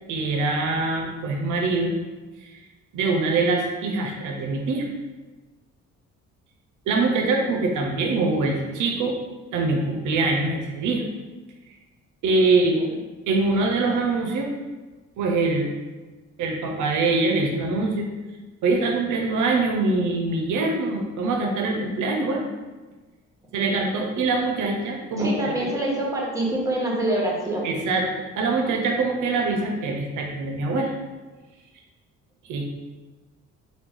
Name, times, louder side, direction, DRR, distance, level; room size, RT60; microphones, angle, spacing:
voice 1, 0.1-2.0 2.4-2.5 2.9-4.9 6.9-9.2 9.5-11.0 12.2-12.8 13.3-14.5 15.2-15.7 16.4-18.1 18.6-22.5 23.5-25.4 27.6-30.9 32.5-32.6, right 3 dB, 75° right, 2 dB, 0.5 m, -23 dB
voice 2, 7.0-7.3 12.4-13.0 25.1-27.7, right 1 dB, 10° right, -3 dB, 0.9 m, -26 dB
3.0 x 2.2 x 3.6 m, 1.2 s
cardioid pair, 90°, 30 cm